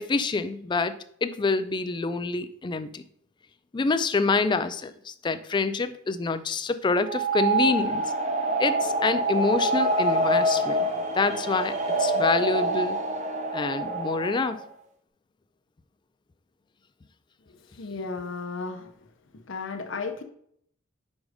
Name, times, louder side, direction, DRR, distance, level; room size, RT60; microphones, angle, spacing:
voice 1, 0.0-3.0 3.7-8.0 8.6-10.9 11.1-13.0 13.5-14.6, left 4 dB, 20° left, 12 dB, 0.3 m, -27 dB
sound 1, 7.0-14.7, right 2 dB, 35° right, 0.7 m, -26 dB
voice 2, 17.5-18.9 19.5-20.2, left 4 dB, 65° left, 5 dB, 0.7 m, -34 dB
5.3 x 4.8 x 4.8 m, 0.68 s
head